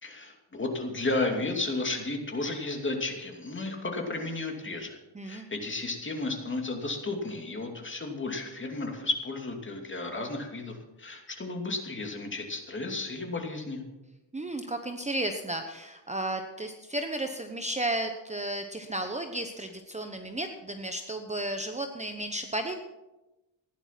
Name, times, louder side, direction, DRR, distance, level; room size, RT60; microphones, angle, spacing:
voice 1, 0.0-5.0 5.2-13.8, left 2 dB, 25° left, 2 dB, 2.6 m, -33 dB
voice 2, 5.1-5.5 14.3-22.8, right 1 dB, 15° right, 6 dB, 0.9 m, -33 dB
15.5 x 10.5 x 5.9 m, 1.0 s
wide cardioid pair, 125°, 43 cm